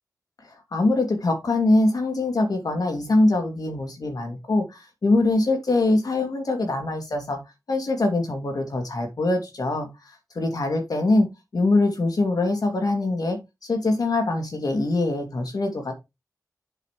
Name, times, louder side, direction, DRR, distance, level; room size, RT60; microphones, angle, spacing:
voice 1, 0.7-7.4 7.7-9.9 10.4-11.3 11.5-15.9, left 2 dB, 70° left, 4 dB, 2.7 m, -23 dB
7.7 x 5.9 x 3.2 m, 0.22 s
cardioid pair, 45°, 7 cm